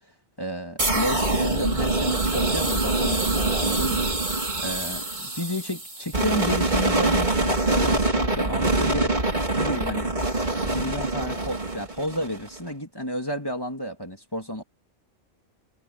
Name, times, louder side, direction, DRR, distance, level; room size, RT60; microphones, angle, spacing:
voice 1, 0.4-4.1 4.6-10.1 10.6-14.6, left 1 dB, 15° left, 2.9 m, -31 dB
sound 1, 0.8-12.6, right 2 dB, 35° right, 3.6 m, -24 dB
omnidirectional pair, 1.4 m